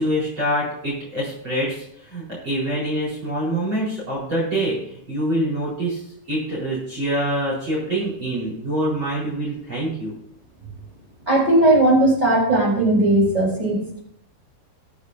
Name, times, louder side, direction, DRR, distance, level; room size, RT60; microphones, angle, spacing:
voice 1, 0.0-1.8 2.1-4.8 5.1-6.0 6.3-10.1, right 1 dB, 30° right, -7 dB, 5.0 m, -25 dB
voice 2, 11.3-14.0, right 1 dB, 10° right, -4 dB, 4.0 m, -17 dB
22.5 x 8.5 x 2.7 m, 0.74 s
omnidirectional pair, 4.8 m